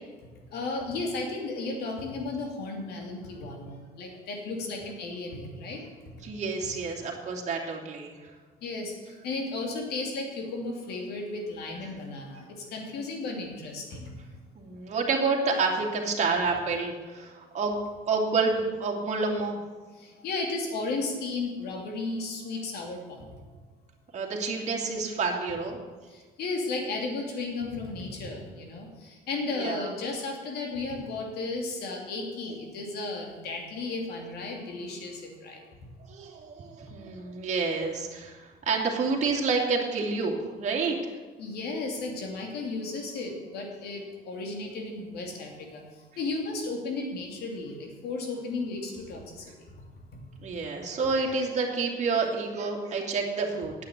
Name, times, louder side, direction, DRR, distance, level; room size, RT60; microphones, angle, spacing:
voice 1, 0.5-5.8 8.6-14.1 20.0-23.3 26.1-35.6 41.4-45.8 46.2-49.5, left 3 dB, 70° left, 1 dB, 2.9 m, -34 dB
voice 2, 6.2-8.3 14.6-17.8 18.1-19.6 24.1-25.8 29.5-29.9 36.1-41.0 50.4-53.7, right 4 dB, 45° right, -1 dB, 2.4 m, -29 dB
9.6 x 8.3 x 8.1 m, 1.3 s
cardioid pair, 110°, 17 cm